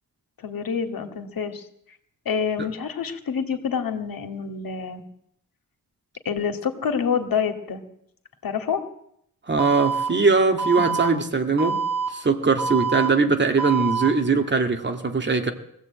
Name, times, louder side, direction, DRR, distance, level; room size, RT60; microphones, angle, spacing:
voice 1, 0.4-1.7 2.3-5.0 6.2-7.8 8.4-8.8, left 6 dB, 80° left, 7 dB, 2.5 m, -27 dB
voice 2, 9.5-11.8 12.1-15.5, right 4 dB, 30° right, 5 dB, 2.1 m, -21 dB
Alarm, 9.6-10.1 10.6-11.1 11.6-12.1 12.6-13.1 13.6-14.1, right 5 dB, 60° right, 4.0 m, -25 dB
22.0 x 15.5 x 8.8 m, 0.74 s
wide cardioid pair, 170°, 34 cm